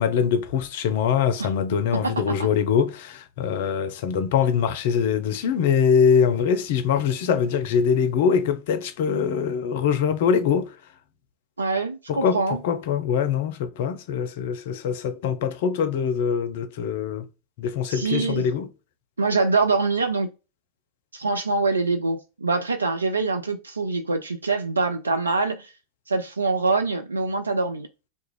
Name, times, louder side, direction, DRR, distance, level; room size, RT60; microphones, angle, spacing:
voice 1, 0.0-10.8 12.1-17.3 17.6-18.7, left 7 dB, 50° left, 0.4 m, -23 dB
voice 2, 1.9-2.2 11.6-12.6 17.9-18.4 19.2-20.3 21.1-25.7 26.1-27.9, right 3 dB, 75° right, 0.3 m, -24 dB
2.4 x 2.1 x 3.1 m
figure-of-eight pair, 90°, 0 cm